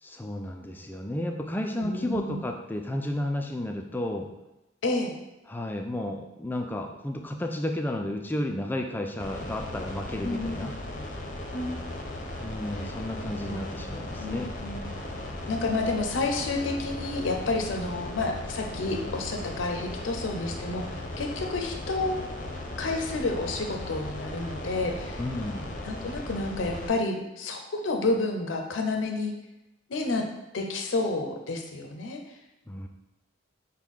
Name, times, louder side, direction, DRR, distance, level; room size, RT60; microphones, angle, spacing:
voice 1, 0.0-4.3 5.5-10.7 12.4-14.5 25.2-25.7 32.7-32.9, left 1 dB, 10° left, 3 dB, 0.3 m, -32 dB
voice 2, 1.8-2.4 4.8-5.1 10.2-10.7 11.5-11.7 12.8-12.9 13.4-13.6 14.2-14.8 15.5-25.2 25.8-29.3 29.9-30.2 30.5-32.2, left 2 dB, 85° left, 3 dB, 0.6 m, -30 dB
sound 1, 9.2-26.9, left 1 dB, 40° left, 0.7 m, -37 dB
6.1 x 2.2 x 3.6 m, 0.94 s
head